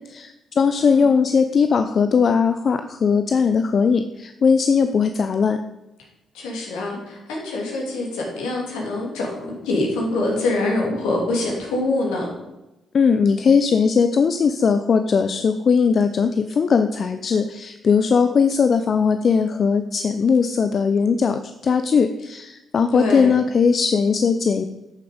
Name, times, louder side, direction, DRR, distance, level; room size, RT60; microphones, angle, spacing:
voice 1, 0.1-5.6 12.9-24.6, left 5 dB, 55° left, 9 dB, 0.6 m, -19 dB
voice 2, 6.3-12.3 22.9-23.3, left 2 dB, 80° left, -1 dB, 3.0 m, -25 dB
Keyboard (musical), 10.1-12.1, left 1 dB, 70° right, 1.6 m, -38 dB
11.5 x 6.9 x 5.1 m, 0.98 s
hypercardioid pair, 45°, 0 cm